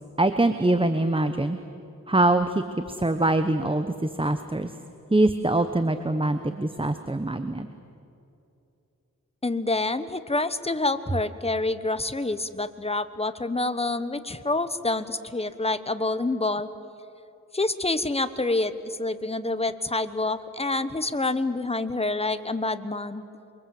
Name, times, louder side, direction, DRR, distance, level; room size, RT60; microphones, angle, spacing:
voice 1, 0.2-1.6 2.1-4.7 5.1-7.7, right 2 dB, 15° right, 9 dB, 1.0 m, -23 dB
voice 2, 9.4-16.7 17.5-23.2, left 2 dB, 20° left, 12 dB, 1.2 m, -27 dB
28.5 x 23.0 x 7.8 m, 2.8 s
wide cardioid pair, 65°, 34 cm